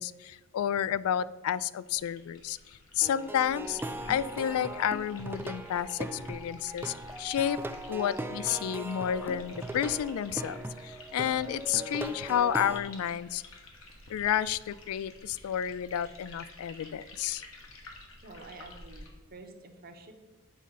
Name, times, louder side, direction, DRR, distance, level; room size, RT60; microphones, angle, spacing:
voice 1, 0.0-2.6 2.9-3.8 4.1-7.6 7.9-10.6 10.8-13.4 14.1-17.4, left 9 dB, 90° left, 17 dB, 0.3 m, -31 dB
sound 1, 1.8-19.1, left 2 dB, 70° left, 1.3 m, -51 dB
Plucked string instrument, 3.0-12.8, right 1 dB, 10° right, 0.3 m, -39 dB
voice 2, 18.2-20.1, right 2 dB, 45° right, 5 dB, 0.8 m, -49 dB
8.2 x 3.7 x 5.4 m, 1.3 s
head